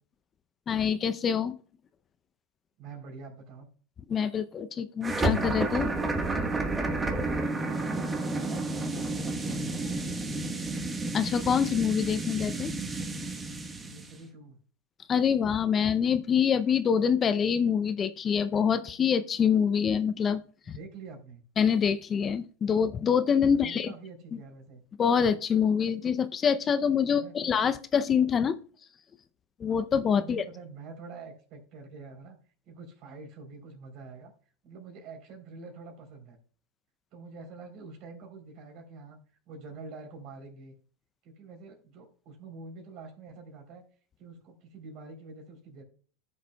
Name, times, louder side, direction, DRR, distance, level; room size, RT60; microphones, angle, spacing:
voice 1, 0.7-1.6 4.1-5.9 11.1-12.7 15.1-20.4 20.7-20.8 21.6-23.9 25.0-28.6 29.6-30.4, left 7 dB, 30° left, 12 dB, 0.6 m, -25 dB
voice 2, 2.8-3.7 7.3-8.1 8.4-10.3 13.9-14.6 20.6-21.4 23.5-24.8 27.1-27.5 30.2-32.4 32.7-34.3 34.6-36.4 37.1-40.7 41.2-43.8 44.2-45.8, right 4 dB, 55° right, 4 dB, 3.4 m, -46 dB
sound 1, 5.0-14.1, right 2 dB, 15° right, 1.1 m, -31 dB
14.5 x 6.6 x 2.3 m, 0.41 s
hypercardioid pair, 100°, 0 cm